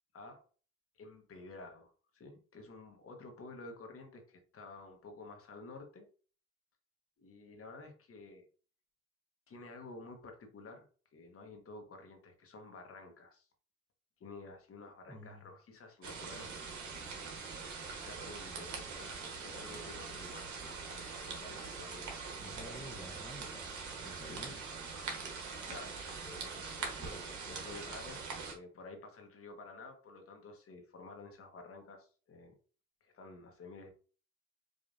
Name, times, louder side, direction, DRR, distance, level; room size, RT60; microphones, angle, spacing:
voice 1, 0.1-0.4 0.9-6.1 7.2-8.5 9.5-13.5 14.2-16.8 18.0-23.0 24.3-24.6 25.1-28.2 28.5-32.5 33.0-33.9, left 3 dB, 50° left, 4 dB, 1.0 m, -51 dB
voice 2, 15.1-15.5 22.4-24.6, left 1 dB, 5° left, 1 dB, 0.7 m, -51 dB
sound 1, 16.0-28.5, right 5 dB, 70° right, 1.2 m, -43 dB
4.9 x 2.5 x 2.6 m, 0.40 s
cardioid pair, 90°, 30 cm